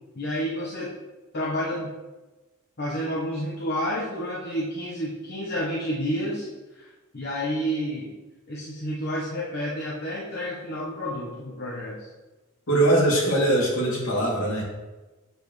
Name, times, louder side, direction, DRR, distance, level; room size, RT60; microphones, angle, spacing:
voice 1, 0.1-0.9 1.3-1.9 2.8-8.2 8.5-12.1, equal, 50° left, -5 dB, 1.0 m, -30 dB
voice 2, 12.7-14.6, right 1 dB, 75° left, -5 dB, 2.6 m, -21 dB
7.8 x 6.8 x 3.2 m, 1.2 s
head